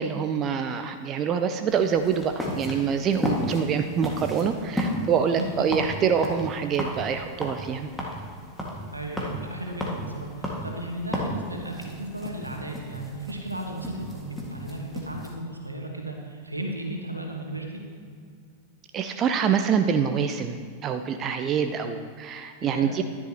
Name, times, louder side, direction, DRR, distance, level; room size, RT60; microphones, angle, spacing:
voice 1, 0.0-7.9 18.9-23.0, right 7 dB, 30° right, 8 dB, 0.5 m, -25 dB
sound 1, 1.7-15.3, equal, ahead, 2.0 m, -34 dB
voice 2, 8.9-17.8 22.6-22.9, right 1 dB, 85° right, 1 dB, 1.6 m, -35 dB
14.0 x 11.0 x 3.0 m, 2.1 s
figure-of-eight pair, 90°, 0 cm